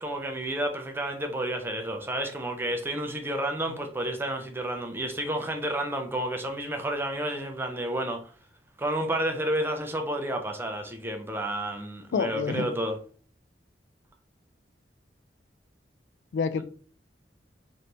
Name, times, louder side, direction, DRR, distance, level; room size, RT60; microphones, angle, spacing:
voice 1, 0.0-8.2 8.8-13.0, right 1 dB, 10° right, 0.5 m, -30 dB
voice 2, 12.1-12.7 16.3-16.6, left 5 dB, 80° left, 0.3 m, -27 dB
3.3 x 2.6 x 2.8 m
head